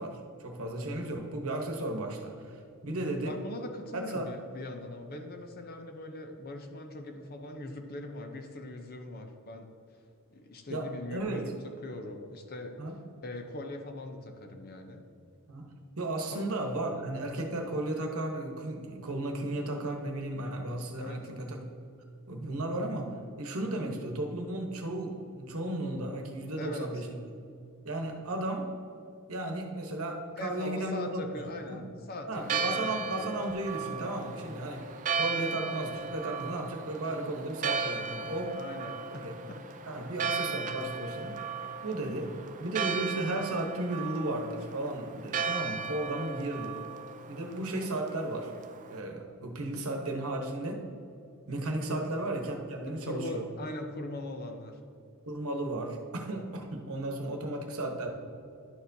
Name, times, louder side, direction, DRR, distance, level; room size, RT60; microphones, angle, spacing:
voice 1, 0.0-3.3 3.9-4.3 10.7-11.5 12.8-13.0 15.5-15.7 16.0-21.6 22.3-27.2 27.8-28.7 29.3-31.2 31.7-31.9 32.3-38.6 39.1-39.4 39.8-41.4 41.8-42.3 42.6-46.8 47.3-48.5 48.9-50.8 51.5-53.4 55.3-58.1, right 2 dB, 70° right, 3 dB, 1.0 m, -34 dB
voice 2, 2.9-9.7 10.3-11.5 11.8-12.8 13.2-15.0 16.3-16.4 21.0-21.3 26.6-26.9 30.4-33.3 38.5-39.9 51.9-52.0 53.0-54.8, left 1 dB, 45° left, 5 dB, 0.7 m, -41 dB
Church bell, 32.3-49.0, right 5 dB, 35° right, 0.4 m, -36 dB
11.0 x 6.8 x 2.7 m, 2.5 s
head